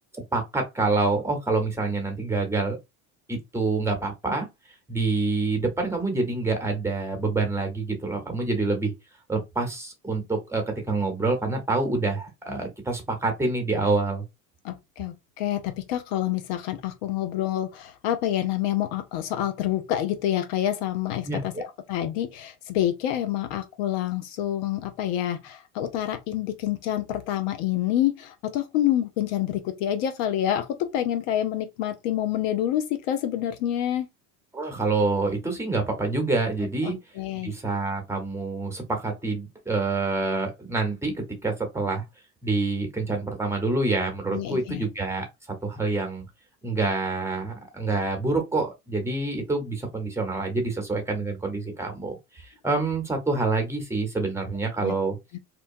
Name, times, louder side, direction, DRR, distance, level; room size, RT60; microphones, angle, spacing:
voice 1, 0.1-2.8 3.3-4.5 4.9-8.9 9.3-14.2 21.2-21.6 34.5-37.0 37.4-42.0 42.4-45.3 45.6-46.2 46.6-55.2, right 3 dB, 5° right, 0.9 m, -27 dB
voice 2, 14.6-34.1 36.8-37.5 44.3-44.9 54.8-54.9 55.3-55.4, left 12 dB, 65° left, 0.6 m, -27 dB
2.8 x 2.2 x 2.6 m
hypercardioid pair, 90°, 42 cm